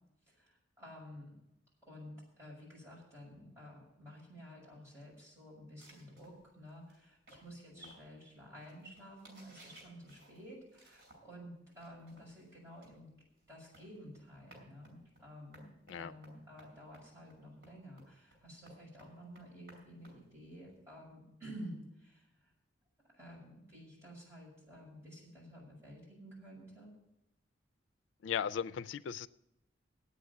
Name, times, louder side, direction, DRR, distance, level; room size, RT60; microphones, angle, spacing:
voice 1, 0.3-1.3 1.9-13.1 13.5-22.5 23.1-26.9, equal, 15° right, -5 dB, 6.4 m, -52 dB
sound 1, 5.8-11.4 11.7-20.8, right 1 dB, 50° right, 5.4 m, -61 dB
voice 2, 28.2-29.3, left 7 dB, 85° left, 17 dB, 0.4 m, -36 dB
9.4 x 8.4 x 9.5 m, 0.89 s
head